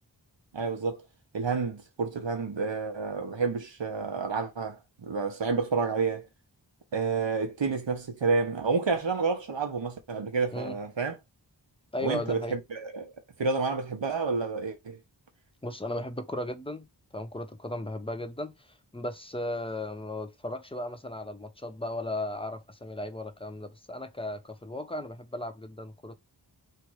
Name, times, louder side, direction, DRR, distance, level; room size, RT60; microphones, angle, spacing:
voice 1, 0.5-1.0 1.3-6.3 6.9-11.2 12.0-13.1 13.4-15.0, right 4 dB, 85° right, 1.2 m, -29 dB
voice 2, 11.9-12.6 15.6-16.9 17.1-26.1, left 1 dB, 10° left, 0.8 m, -36 dB
3.4 x 2.9 x 4.7 m
wide cardioid pair, 45°, 43 cm